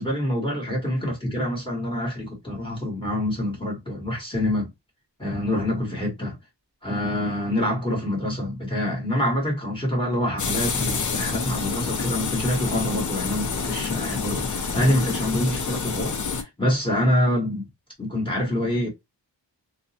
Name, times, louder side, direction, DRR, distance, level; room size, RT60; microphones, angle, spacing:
voice 1, 0.0-4.7 5.2-6.4 6.8-17.7 18.0-18.9, left 1 dB, 10° left, 1.3 m, -26 dB
sound 1, 10.4-16.4, left 5 dB, 45° left, 0.5 m, -28 dB
2.6 x 2.0 x 2.7 m
wide cardioid pair, 145°, 44 cm